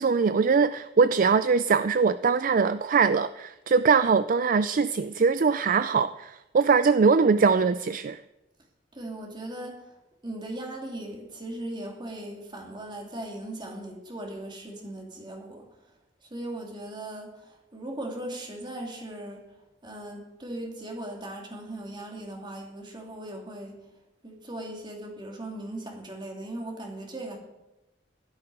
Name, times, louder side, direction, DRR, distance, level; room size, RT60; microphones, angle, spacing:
voice 1, 0.0-8.2, right 5 dB, 50° right, 13 dB, 0.4 m, -22 dB
voice 2, 8.9-9.8 10.2-15.6 16.3-17.3 17.7-19.4 19.8-23.8 24.2-27.4, right 1 dB, 25° right, 1 dB, 3.1 m, -38 dB
15.5 x 12.5 x 5.0 m, 0.97 s
head